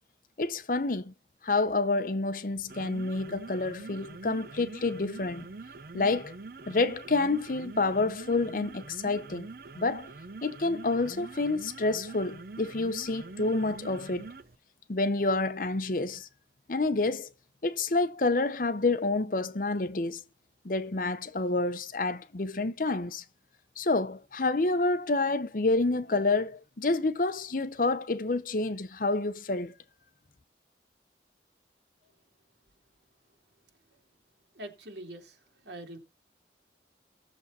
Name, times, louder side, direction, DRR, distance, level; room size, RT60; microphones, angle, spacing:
voice 1, 0.4-1.1 1.4-5.5 5.9-6.3 6.7-9.5 9.8-10.1 10.4-14.3 14.9-16.3 16.7-17.3 17.6-20.2 20.6-23.2 23.8-29.7, left 3 dB, 50° left, 0.8 m, -28 dB
sound 1, 2.6-14.6, right 3 dB, 55° right, 0.7 m, -45 dB
voice 2, 34.5-35.4 35.6-36.0, right 1 dB, 80° right, 3.0 m, -43 dB
17.0 x 7.2 x 4.1 m
head